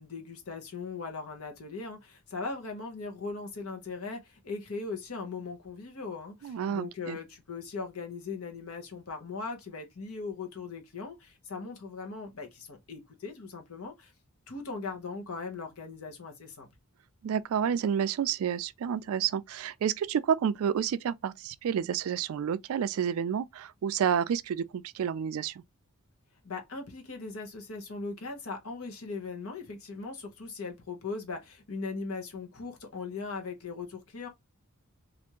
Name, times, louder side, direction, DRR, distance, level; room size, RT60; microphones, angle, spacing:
voice 1, 0.0-14.1 14.5-16.7 26.4-34.3, left 4 dB, 65° left, 0.9 m, -39 dB
voice 2, 6.4-7.2 17.2-25.6, right 8 dB, 65° right, 0.3 m, -30 dB
3.3 x 2.5 x 2.9 m
head